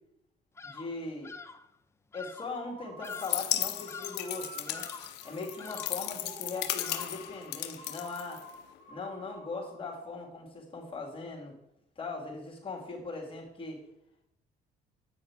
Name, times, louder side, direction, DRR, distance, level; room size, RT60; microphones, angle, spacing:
voice 1, 0.6-1.3 2.1-4.9 5.2-8.4 8.9-11.5 12.0-13.8, left 3 dB, 30° left, -1 dB, 2.1 m, -40 dB
Bird vocalization bird call bird song, 0.6-1.7 2.1-2.6 3.0-3.5 3.9-4.3 4.7-5.2 5.6-6.1 6.8-7.3, left 5 dB, 15° left, 0.5 m, -46 dB
sound 1, 2.6-9.8, right 1 dB, 65° right, 2.5 m, -50 dB
sound 2, 3.0-8.8, left 14 dB, 85° left, 0.7 m, -36 dB
8.3 x 6.4 x 4.6 m, 0.79 s
cardioid pair, 110°, 17 cm